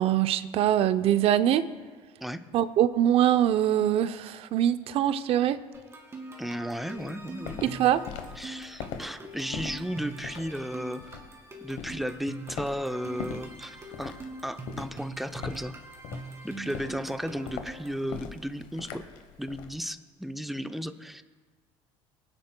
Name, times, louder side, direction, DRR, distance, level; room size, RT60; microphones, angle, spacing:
voice 1, 0.0-1.6 2.5-5.6 7.6-8.0, right 11 dB, 55° right, 12 dB, 0.5 m, -23 dB
sound 1, 5.7-18.0, right 2 dB, 25° right, 1.9 m, -44 dB
voice 2, 6.4-7.6 8.4-11.0 11.6-14.2 14.4-15.7 16.4-19.0 19.4-21.2, equal, ahead, 9 dB, 0.6 m, -34 dB
Walk footsteps, 7.0-19.8, left 7 dB, 75° left, 1.0 m, -41 dB
23.5 x 9.6 x 2.2 m, 1.5 s
cardioid pair, 110°, 12 cm